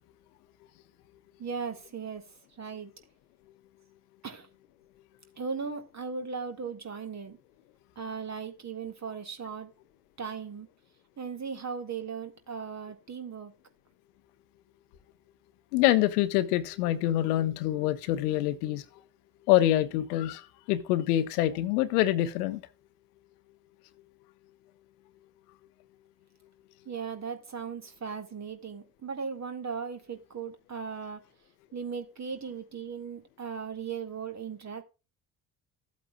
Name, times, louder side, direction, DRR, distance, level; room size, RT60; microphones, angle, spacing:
voice 1, 1.4-2.3 2.6-2.9 4.2-4.5 5.4-7.4 8.0-9.7 10.2-10.7 11.2-13.5 26.9-31.2 31.7-34.8, right 6 dB, 35° right, 2.1 m, -37 dB
voice 2, 15.7-18.8 19.5-22.6, left 14 dB, 70° left, 0.9 m, -26 dB
15.0 x 8.3 x 2.3 m
figure-of-eight pair, 45°, 47 cm